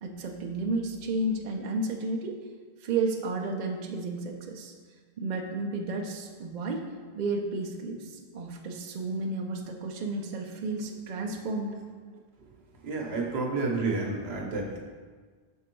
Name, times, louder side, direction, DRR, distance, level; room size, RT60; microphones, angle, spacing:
voice 1, 0.0-2.3 2.8-4.7 5.2-6.8 7.1-11.8, right 2 dB, 55° right, 1 dB, 0.6 m, -32 dB
voice 2, 12.8-14.8, right 3 dB, 75° right, 0 dB, 1.1 m, -30 dB
6.0 x 3.6 x 4.5 m, 1.5 s
omnidirectional pair, 1.1 m